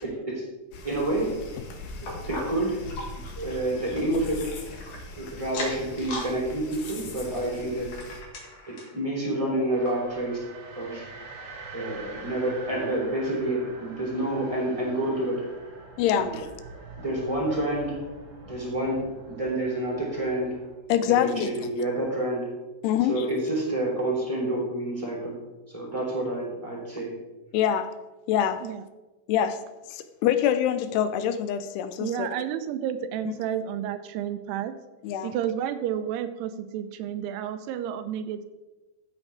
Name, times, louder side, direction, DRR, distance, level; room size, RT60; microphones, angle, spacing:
voice 1, 0.0-0.4 0.8-1.3 2.1-2.8 3.1-4.4 5.2-7.9 8.7-10.4 10.7-11.1 11.6-15.4 16.1-16.3 17.0-18.0 18.4-20.6 21.1-22.5 23.1-25.4 25.7-27.1, right 1 dB, 10° right, -4 dB, 2.4 m, -28 dB
sound 1, 0.7-8.2, left 2 dB, 65° left, 2.4 m, -41 dB
sound 2, 2.1-5.0 5.4-6.3 6.6-9.0 9.5-9.6 9.8-9.9 10.6-10.7, left 2 dB, 50° left, 2.7 m, -39 dB
sound 3, 9.7-20.8, right 3 dB, 55° right, 2.1 m, -44 dB
voice 2, 16.0-16.5 20.9-21.5 22.8-23.3 27.5-27.9 28.3-28.6 29.3-29.6 29.9-32.3 33.3-33.4 35.0-35.3, left 10 dB, 80° left, 10 dB, 2.6 m, -25 dB
voice 3, 32.0-34.8 35.2-38.5, right 9 dB, 85° right, 10 dB, 2.6 m, -31 dB
14.0 x 8.1 x 3.4 m, 1.1 s
omnidirectional pair, 4.8 m